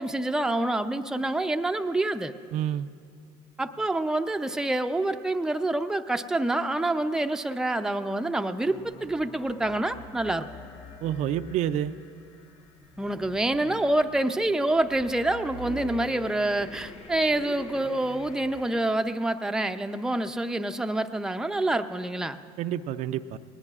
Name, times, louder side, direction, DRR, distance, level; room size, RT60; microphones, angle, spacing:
voice 1, 0.0-2.3 3.6-10.5 13.0-22.4, right 2 dB, 5° right, 7 dB, 0.5 m, -27 dB
voice 2, 2.5-2.9 11.0-11.9 22.6-23.4, right 11 dB, 60° right, 10 dB, 0.4 m, -28 dB
sound 1, 8.6-18.8, left 2 dB, 50° left, 1.4 m, -45 dB
19.5 x 19.5 x 2.5 m, 2.3 s
supercardioid pair, 85°, 14 cm